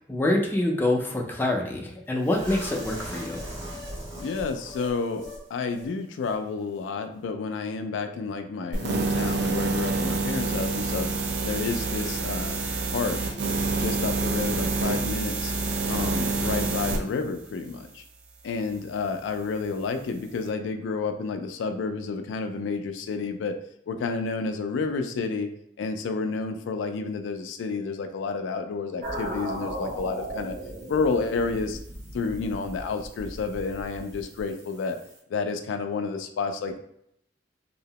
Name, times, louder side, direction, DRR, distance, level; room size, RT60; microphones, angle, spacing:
voice 1, 0.1-3.4, left 1 dB, 10° left, 0 dB, 0.4 m, -26 dB
sound 1, 2.2-5.4 5.7-5.9 6.2-6.3, equal, 80° right, 1.0 m, -39 dB
voice 2, 4.2-5.2 5.5-11.1 11.4-12.6 12.9-13.2 13.8-15.5 15.9-18.0 18.4-23.6 23.9-25.5 25.8-30.5 30.9-31.8 32.1-35.0 35.3-36.8, left 4 dB, 85° left, 7 dB, 0.3 m, -30 dB
sound 2, 8.7-17.0, right 3 dB, 65° right, 0.4 m, -27 dB
sound 3, 29.0-35.2, right 1 dB, 45° right, 0.9 m, -37 dB
2.7 x 2.0 x 2.8 m, 0.74 s
head